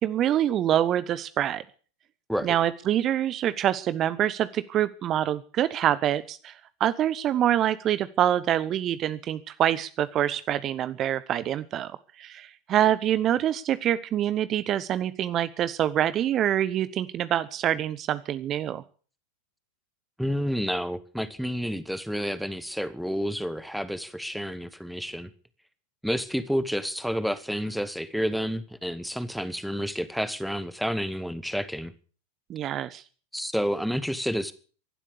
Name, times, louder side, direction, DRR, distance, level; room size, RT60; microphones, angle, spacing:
voice 1, 0.0-1.6 2.4-18.8 32.5-33.0, right 11 dB, 30° right, 15 dB, 0.8 m, -26 dB
voice 2, 20.2-25.3 26.0-31.9 33.3-34.5, equal, ahead, 15 dB, 1.2 m, -30 dB
16.5 x 12.0 x 6.9 m, 0.41 s
figure-of-eight pair, 90°, 0 cm